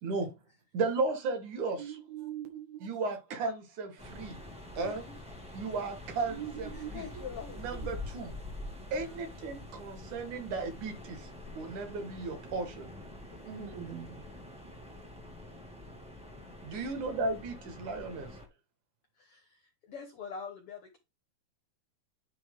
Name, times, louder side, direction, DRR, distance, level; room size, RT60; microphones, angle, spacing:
voice 1, 0.0-0.3 0.7-2.0 2.8-4.4 4.8-5.0 5.5-7.1 7.6-8.4 8.9-11.3 11.5-12.9 16.6-18.3, right 3 dB, 60° right, 2.8 m, -35 dB
voice 2, 1.8-2.9 6.3-7.0 13.5-14.2, right 10 dB, 85° right, 3.5 m, -42 dB
sound 1, 4.0-18.5, left 2 dB, 5° right, 0.6 m, -46 dB
voice 3, 4.7-5.2 6.7-7.6 9.1-9.2 13.3-13.7 16.7-16.9 19.2-21.0, left 6 dB, 70° left, 1.3 m, -45 dB
10.5 x 4.7 x 3.7 m
omnidirectional pair, 4.2 m